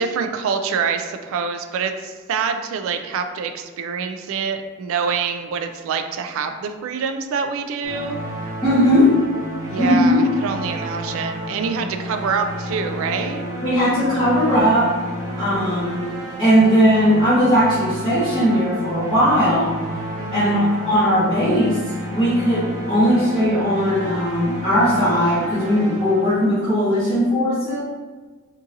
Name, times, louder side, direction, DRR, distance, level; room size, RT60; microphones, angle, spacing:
voice 1, 0.0-8.2 9.7-13.4 20.2-20.6, right 5 dB, 65° right, 7 dB, 0.3 m, -25 dB
sound 1, 7.8-26.7, equal, 15° right, 0.9 m, -31 dB
voice 2, 8.6-9.2 9.8-10.2 13.6-15.0 15.4-16.0 16.4-19.8 20.3-21.8 22.1-27.8, equal, 20° left, -13 dB, 0.9 m, -18 dB
3.7 x 2.7 x 2.6 m, 1.3 s
head